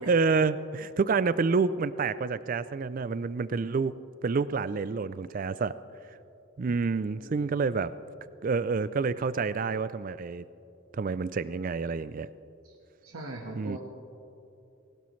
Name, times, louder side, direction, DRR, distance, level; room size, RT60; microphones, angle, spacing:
voice 1, 0.1-3.9 4.2-5.8 6.6-7.9 8.4-10.4 10.9-12.3 13.6-13.8, right 4 dB, 40° right, 15 dB, 0.3 m, -28 dB
voice 2, 7.0-7.5 12.6-12.7 13.0-13.8, right 1 dB, 85° right, 0 dB, 1.4 m, -41 dB
20.5 x 18.0 x 3.2 m, 2.7 s
head